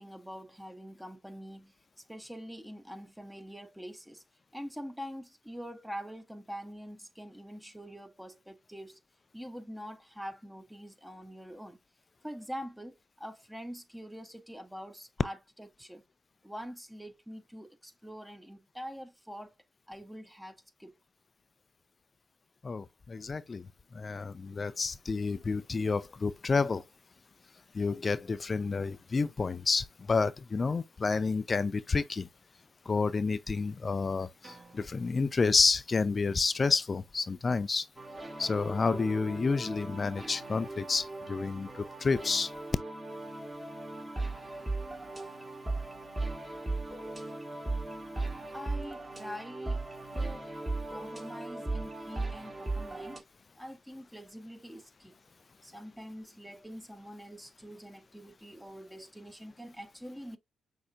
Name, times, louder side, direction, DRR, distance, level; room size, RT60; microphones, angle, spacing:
voice 1, 0.0-4.2 4.5-9.0 9.3-11.8 12.2-16.0 16.4-19.5 19.9-20.9 48.5-49.8 50.1-50.5 50.9-53.2 53.6-55.2 55.6-60.4, equal, 5° right, 0.9 m, -45 dB
voice 2, 22.6-23.6 24.0-26.8 27.7-32.3 32.9-37.8 38.4-41.7 42.0-42.5, left 4 dB, 40° left, 0.3 m, -29 dB
sound 1, 34.4-36.3, right 3 dB, 40° right, 1.9 m, -58 dB
sound 2, 37.9-53.2, right 2 dB, 20° right, 1.5 m, -38 dB
6.2 x 2.6 x 2.4 m
hypercardioid pair, 40°, 0 cm